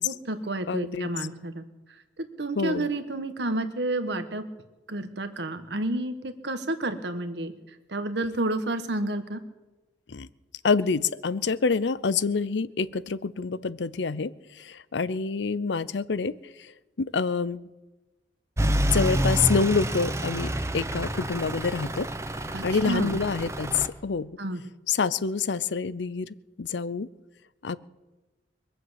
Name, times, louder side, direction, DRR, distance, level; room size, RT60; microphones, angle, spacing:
voice 1, 0.0-1.6 2.4-4.4 4.9-7.5 7.9-9.4 22.5-23.2 24.4-24.6, right 2 dB, 70° right, 9 dB, 1.4 m, -30 dB
voice 2, 0.7-1.1 2.6-2.9 10.1-10.3 10.6-14.3 14.6-16.4 17.0-17.6 18.9-22.1 22.6-24.4 24.9-27.1 27.6-27.8, left 5 dB, 75° left, 18 dB, 0.6 m, -27 dB
Truck / Idling, 18.6-23.9, right 1 dB, 15° right, 0.9 m, -28 dB
22.5 x 7.8 x 8.1 m, 1.1 s
head